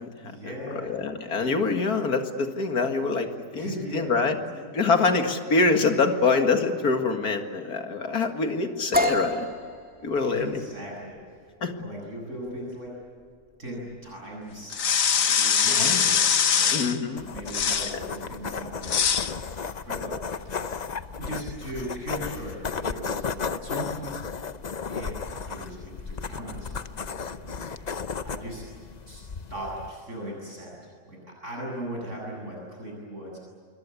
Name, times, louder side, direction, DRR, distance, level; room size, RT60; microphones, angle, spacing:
voice 1, 0.2-1.0 3.5-5.0 10.2-11.5 11.8-12.9 13.6-16.9 17.2-19.0 19.4-20.6 21.2-24.2 24.9-27.9 28.2-28.6 29.1-29.2 29.5-33.4, right 1 dB, 50° right, -2 dB, 8.1 m, -38 dB
voice 2, 0.8-4.4 4.7-9.5 10.0-10.5 11.6-11.7 15.7-16.1 16.7-17.3 17.9-18.0, left 4 dB, 75° left, 5 dB, 2.5 m, -25 dB
sound 1, 8.9-16.6, left 1 dB, 5° right, 2.7 m, -33 dB
sound 2, 14.7-17.0 17.5-18.0 18.8-19.3, left 7 dB, 60° left, 1.5 m, -22 dB
sound 3, 17.2-29.9, left 5 dB, 40° left, 0.6 m, -34 dB
27.0 x 23.5 x 8.5 m, 2.1 s
omnidirectional pair, 1.6 m